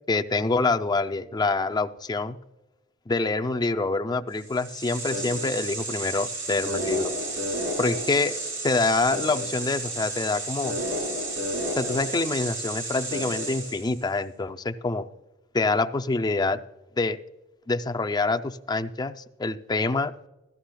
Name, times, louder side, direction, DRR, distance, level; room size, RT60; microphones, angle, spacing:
voice 1, 0.1-2.4 3.1-7.1 7.8-8.4 8.6-10.8 11.8-15.1 15.5-16.6 17.0-17.2 17.7-20.1, left 3 dB, 20° left, 7 dB, 0.4 m, -26 dB
sound 1, 4.4-14.0, right 1 dB, 85° right, 4.3 m, -31 dB
15.0 x 13.0 x 2.2 m, 1.0 s
head